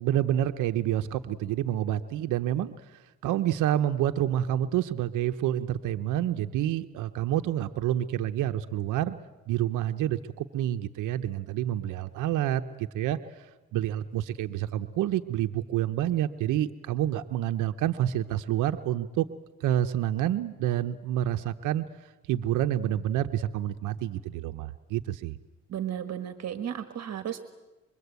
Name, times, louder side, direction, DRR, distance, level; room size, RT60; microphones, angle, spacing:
voice 1, 0.0-9.2 9.5-19.3 19.6-25.4, right 12 dB, 85° right, 9 dB, 0.8 m, -28 dB
voice 2, 25.7-27.4, right 10 dB, 60° right, 9 dB, 1.5 m, -34 dB
25.0 x 23.0 x 8.2 m, 1.1 s
cardioid pair, 90°, 30 cm